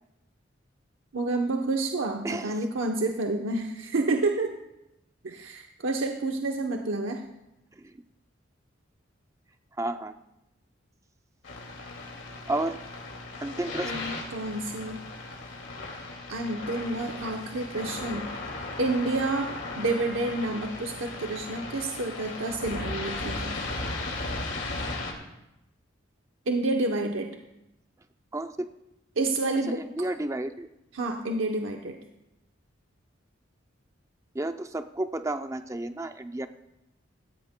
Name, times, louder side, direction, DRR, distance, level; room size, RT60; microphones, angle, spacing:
voice 1, 1.1-4.6 5.2-7.2 13.8-15.0 16.3-18.3 18.8-23.6 26.5-27.3 29.2-29.8 30.9-32.0, right 2 dB, 85° right, 3 dB, 0.8 m, -29 dB
voice 2, 9.8-10.1 12.5-12.8 13.4-13.9 28.3-28.7 29.7-30.7 34.3-36.5, right 1 dB, 15° right, 8 dB, 0.5 m, -31 dB
sound 1, 11.4-25.1, left 2 dB, 65° left, 2.3 m, -36 dB
17.5 x 15.0 x 2.2 m, 0.90 s
head